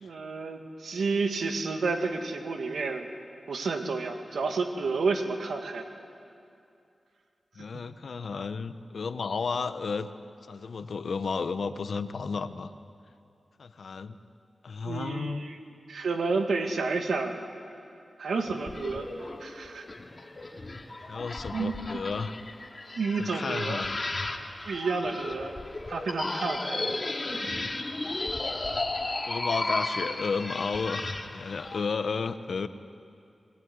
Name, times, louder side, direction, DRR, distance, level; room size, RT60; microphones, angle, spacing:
voice 1, 0.0-3.1 3.5-5.9 7.7-7.8 14.8-15.6 15.9-17.5 18.2-19.1 19.4-19.9 21.5-21.8 23.0-23.8 24.7-25.5 25.9-26.9 27.3-27.9, right 4 dB, 90° right, 5 dB, 2.0 m, -30 dB
voice 2, 7.5-10.1 10.5-12.7 13.6-14.2 14.6-15.4 21.1-22.3 23.2-24.0 28.7-32.7, left 5 dB, 75° left, 11 dB, 1.0 m, -33 dB
Mutilated Monsters, 18.3-31.8, left 2 dB, 40° left, 2.4 m, -34 dB
25.0 x 21.0 x 9.7 m, 2.6 s
cardioid pair, 50°, 0 cm